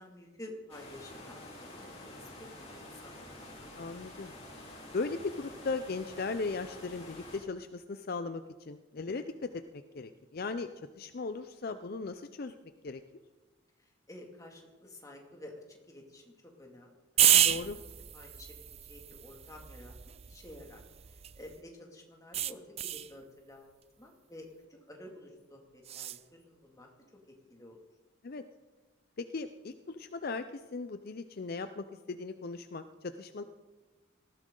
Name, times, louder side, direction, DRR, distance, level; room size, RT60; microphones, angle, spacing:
voice 1, 0.0-3.4 13.8-16.3 16.6-17.4 17.9-26.9 27.3-27.8, left 1 dB, 15° left, 0 dB, 2.3 m, -51 dB
sound 1, 0.7-7.4, left 1 dB, 30° left, 3.5 m, -48 dB
voice 2, 3.8-4.3 4.9-9.5 9.9-10.7 11.0-12.5 12.8-13.0 17.3-17.8 28.2-28.4 29.2-33.4, left 4 dB, 50° left, 10 dB, 0.5 m, -37 dB
sound 2, 17.2-21.6 22.3-23.1 25.8-26.2, right 11 dB, 30° right, 0.4 m, -30 dB
19.0 x 15.5 x 3.8 m, 1.3 s
head